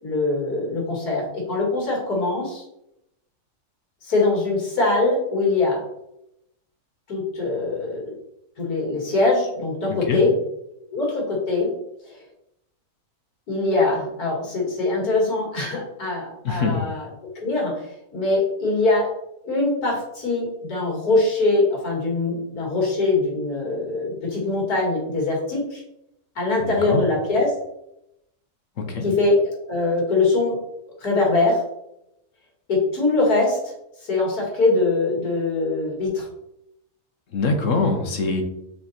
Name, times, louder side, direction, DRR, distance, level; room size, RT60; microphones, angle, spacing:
voice 1, 0.0-2.6 4.0-5.8 7.1-8.0 8.6-10.3 10.9-11.7 13.5-17.1 17.4-19.1 19.4-25.8 26.4-27.5 29.0-30.6 31.0-31.6 32.7-33.7 34.0-36.3, left 3 dB, 80° left, -3 dB, 2.8 m, -22 dB
voice 2, 16.4-16.8 26.6-27.0 28.8-29.1 37.3-38.4, left 3 dB, 60° left, 4 dB, 1.2 m, -23 dB
5.6 x 4.1 x 4.3 m, 0.82 s
omnidirectional pair, 1.6 m